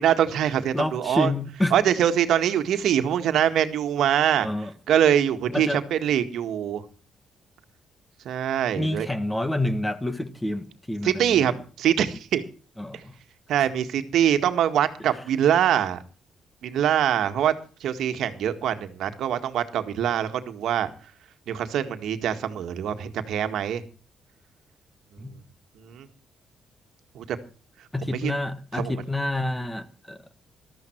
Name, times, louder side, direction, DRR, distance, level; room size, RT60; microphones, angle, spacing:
voice 1, 0.0-1.3 1.7-4.5 4.9-6.8 8.2-9.1 11.0-12.4 13.5-16.0 16.6-17.5 17.8-20.9 21.5-23.8 25.8-26.1 27.1-27.4 28.0-28.3 28.7-28.9, right 10 dB, 75° right, 1.8 m, -23 dB
voice 2, 0.7-1.7 4.4-4.7 5.5-5.8 8.7-11.5 12.8-13.0 25.2-25.3 27.9-30.2, left 1 dB, 10° left, 1.7 m, -28 dB
14.0 x 13.0 x 4.6 m
cardioid pair, 90°, 0 cm